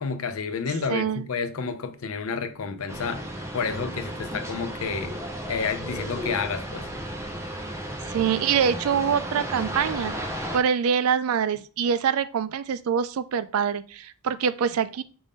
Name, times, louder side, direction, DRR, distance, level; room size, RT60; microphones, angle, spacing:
voice 1, 0.0-3.2 3.5-5.1 5.5-6.9, left 5 dB, 80° left, 0.5 m, -30 dB
voice 2, 0.9-1.2 8.1-15.0, right 7 dB, 85° right, 0.4 m, -25 dB
sound 1, 2.9-10.6, equal, 15° right, 0.6 m, -34 dB
5.2 x 2.6 x 3.5 m
head